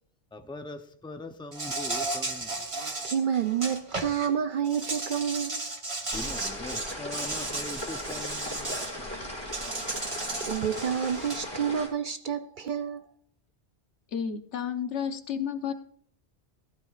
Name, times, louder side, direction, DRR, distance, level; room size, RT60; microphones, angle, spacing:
voice 1, 0.3-2.5 6.1-8.8, left 2 dB, 5° left, 0.5 m, -41 dB
Insect, 1.5-4.3 4.6-8.9 9.5-11.5, right 2 dB, 30° right, 1.2 m, -34 dB
voice 2, 3.0-5.6 6.2-6.3 9.9-10.0 10.4-13.0, right 8 dB, 60° right, 0.6 m, -29 dB
sound 1, 6.1-11.9, left 1 dB, 20° left, 2.9 m, -38 dB
voice 3, 14.1-15.7, left 7 dB, 80° left, 1.2 m, -31 dB
15.0 x 12.0 x 2.4 m
omnidirectional pair, 1.2 m